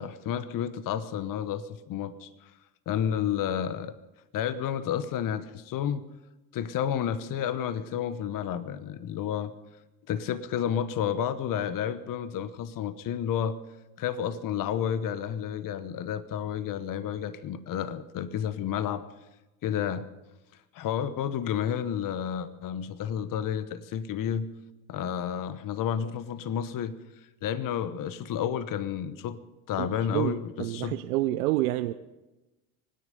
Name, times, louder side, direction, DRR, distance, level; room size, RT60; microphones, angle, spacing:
voice 1, 0.0-2.5 2.9-3.9 4.3-6.0 6.5-9.5 10.1-13.6 14.0-19.0 19.6-20.1 20.7-24.5 24.9-27.0 27.4-29.4 29.7-31.0, left 9 dB, 50° left, 14 dB, 1.1 m, -31 dB
voice 2, 30.1-31.9, right 16 dB, 80° right, 10 dB, 0.7 m, -28 dB
25.0 x 10.5 x 5.3 m, 1.1 s
hypercardioid pair, 75°, 43 cm